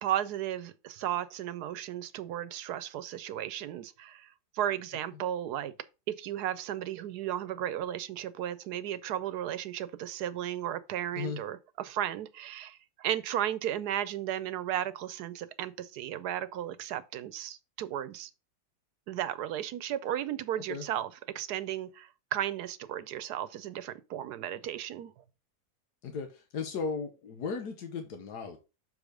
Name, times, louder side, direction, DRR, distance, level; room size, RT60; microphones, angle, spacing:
voice 1, 0.0-5.7 6.1-18.3 19.1-25.1, right 11 dB, 80° right, 1.2 m, -35 dB
voice 2, 26.0-28.6, left 5 dB, 85° left, 1.6 m, -36 dB
6.7 x 4.9 x 5.0 m
omnidirectional pair, 1.7 m